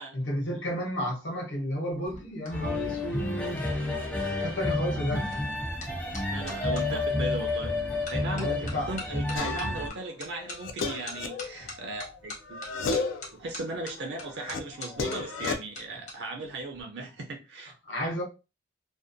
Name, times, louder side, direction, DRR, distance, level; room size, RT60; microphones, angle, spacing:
voice 1, 0.1-3.7 4.4-5.3 8.3-8.9 17.8-18.2, equal, 70° left, 0.8 m, -32 dB
sound 1, 1.8-6.8 7.5-7.8 8.1-16.1 16.4-16.8, left 3 dB, 40° left, 0.8 m, -44 dB
sound 2, 2.5-9.9, left 2 dB, 10° left, 0.4 m, -30 dB
voice 2, 6.3-7.8 8.1-12.6 13.3-17.7, right 2 dB, 60° right, 0.4 m, -37 dB
sound 3, 9.3-9.9 10.3-12.2 12.5-13.3 13.7-15.5, left 4 dB, 90° left, 0.4 m, -33 dB
2.5 x 2.1 x 2.5 m
head